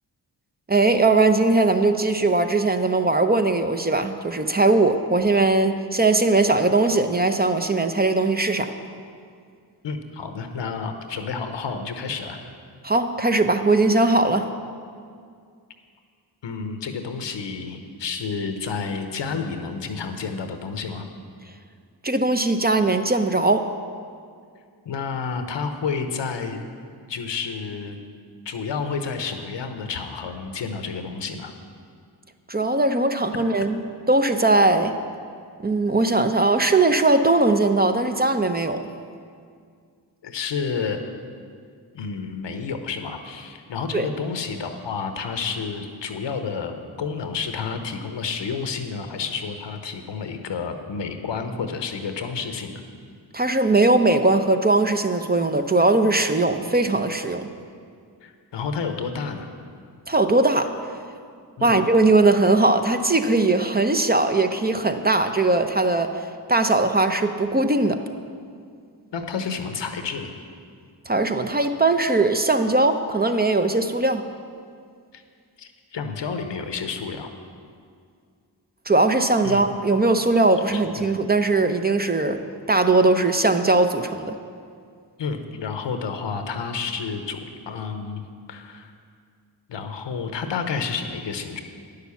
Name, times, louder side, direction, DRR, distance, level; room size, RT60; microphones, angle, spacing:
voice 1, 0.7-8.7 12.8-14.4 22.0-23.7 32.5-33.8 34.1-34.9 35.6-38.9 43.9-44.1 53.3-57.5 60.1-60.7 61.6-66.1 66.5-68.0 71.1-74.2 78.9-82.4 82.7-84.3, right 2 dB, 20° right, 7 dB, 0.7 m, -20 dB
voice 2, 9.8-12.4 16.4-21.1 24.8-26.6 27.1-28.0 28.4-31.5 40.2-41.0 41.9-52.8 58.2-59.5 61.6-61.8 69.1-70.3 75.1-75.2 75.6-77.3 79.4-79.7 80.7-81.1 85.2-88.2 88.5-88.9 89.7-91.6, left 5 dB, 75° left, 7 dB, 0.9 m, -30 dB
9.3 x 6.7 x 7.0 m, 2.2 s
cardioid pair, 40°, 43 cm